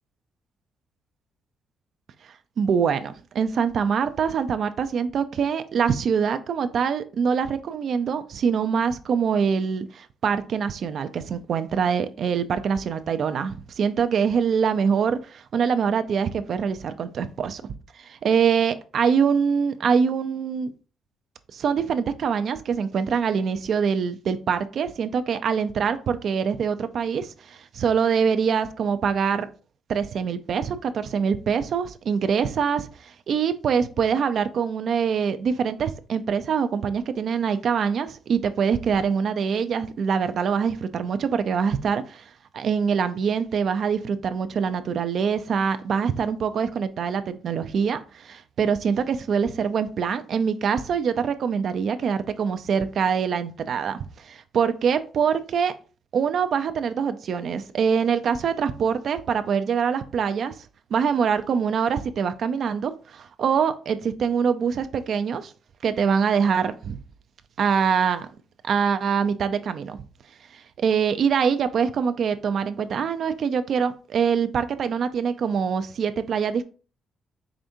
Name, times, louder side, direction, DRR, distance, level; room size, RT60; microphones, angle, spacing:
voice 1, 2.6-17.6 18.0-20.7 21.5-29.5 29.9-55.7 56.1-60.5 60.9-65.5 65.8-67.0 67.6-68.3 68.6-70.0 70.5-76.6, right 6 dB, 60° right, 0.4 m, -24 dB
5.0 x 3.4 x 2.6 m
cardioid pair, 90°, 0 cm